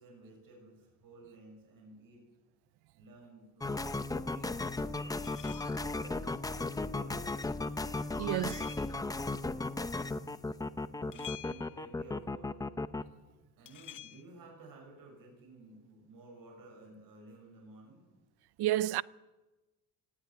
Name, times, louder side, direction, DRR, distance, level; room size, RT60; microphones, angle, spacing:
voice 1, 0.0-2.2 3.0-3.8 4.1-5.2 5.8-7.6 8.2-10.2 10.7-12.7 13.6-18.1, right 2 dB, 55° right, 7.0 m, -54 dB
sound 1, 3.6-13.0, left 2 dB, 10° left, 0.6 m, -35 dB
sound 2, 5.2-6.0 8.0-9.0 11.1-12.0 13.6-14.2, left 11 dB, 50° left, 1.0 m, -50 dB
voice 2, 8.2-8.6 18.6-19.0, right 15 dB, 70° right, 0.6 m, -30 dB
19.0 x 14.5 x 9.5 m
cardioid pair, 135°, 40 cm